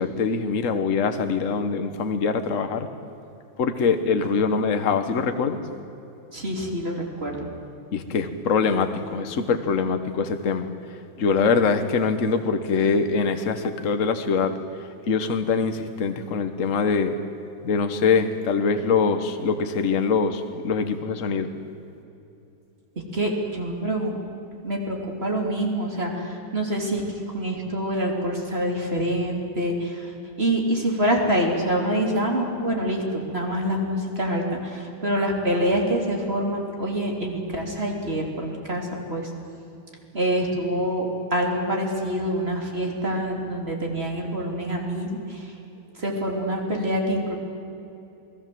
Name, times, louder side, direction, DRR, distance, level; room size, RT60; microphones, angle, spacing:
voice 1, 0.0-2.9 3.6-5.6 7.9-10.7 11.2-14.5 15.1-17.2 17.6-21.5, left 5 dB, 40° left, 8 dB, 1.5 m, -23 dB
voice 2, 6.3-7.4 23.1-24.2 24.6-27.0 27.3-39.3 40.1-45.5 45.9-47.4, equal, 25° right, 0 dB, 3.3 m, -26 dB
27.5 x 19.5 x 7.8 m, 2.8 s
omnidirectional pair, 2.4 m